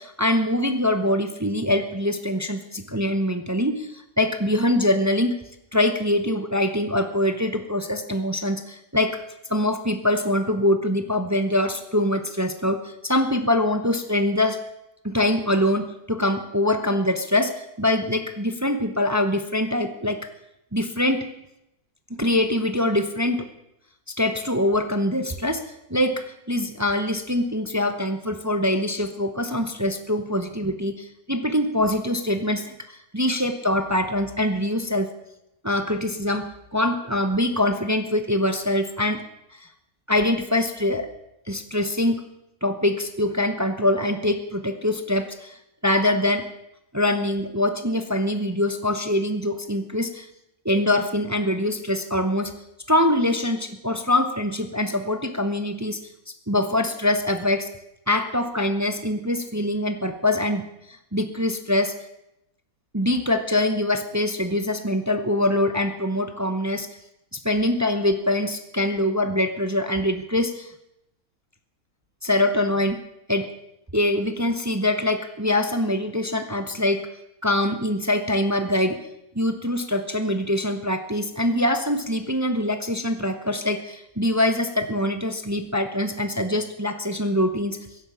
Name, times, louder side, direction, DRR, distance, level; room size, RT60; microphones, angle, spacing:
voice 1, 0.0-5.3 5.7-9.2 9.5-14.6 15.0-20.2 20.7-21.3 22.2-23.5 24.2-25.6 25.9-35.1 35.6-39.2 39.5-39.7 40.1-41.1 41.5-42.2 42.6-45.6 45.8-46.5 46.9-50.3 50.6-52.5 52.9-56.1 56.5-57.7 58.1-61.9 62.9-66.9 67.3-70.7 72.2-73.0 73.3-73.5 73.9-77.0 77.4-79.0 79.3-87.8, left 1 dB, 15° right, 7 dB, 0.8 m, -24 dB
16.5 x 10.5 x 7.1 m, 0.85 s
omnidirectional pair, 1.6 m